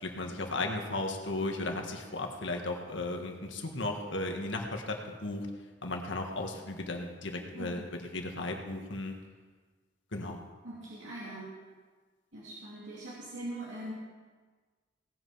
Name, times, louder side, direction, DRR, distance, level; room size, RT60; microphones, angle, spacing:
voice 1, 0.0-5.5 5.8-9.1 10.1-10.4, left 2 dB, 80° left, 3 dB, 1.8 m, -35 dB
voice 2, 10.6-11.5 12.3-13.9, right 1 dB, 85° right, -7 dB, 3.0 m, -41 dB
18.0 x 8.6 x 5.8 m, 1.4 s
head